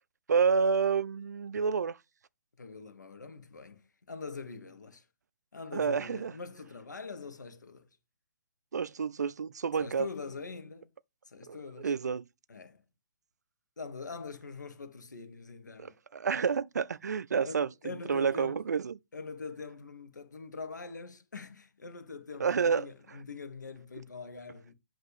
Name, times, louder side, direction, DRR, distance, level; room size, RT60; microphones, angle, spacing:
voice 1, 0.3-2.0 5.7-6.3 8.7-10.1 11.5-12.2 16.1-17.7 18.1-18.9 22.4-22.9, right 6 dB, 65° right, 0.4 m, -29 dB
voice 2, 2.6-3.8 4.1-5.0 5.5-7.9 9.8-10.9 11.2-11.9 12.5-12.8 13.8-15.9 17.4-18.6 19.1-24.7, left 4 dB, 70° left, 1.5 m, -43 dB
8.0 x 3.1 x 4.3 m
figure-of-eight pair, 130°, 10 cm